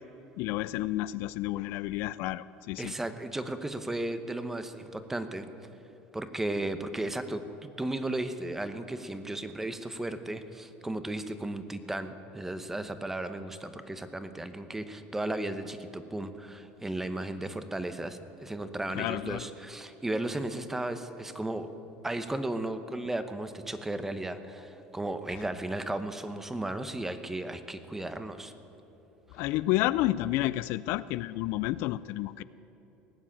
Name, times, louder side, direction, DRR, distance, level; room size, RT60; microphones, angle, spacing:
voice 1, 0.4-2.9 18.9-19.5 29.3-32.4, left 16 dB, 65° left, 17 dB, 0.3 m, -30 dB
voice 2, 2.8-5.5 6.1-21.7 22.0-28.5, right 1 dB, 10° right, 10 dB, 0.9 m, -35 dB
18.5 x 7.4 x 8.7 m, 3.0 s
supercardioid pair, 120°, 4 cm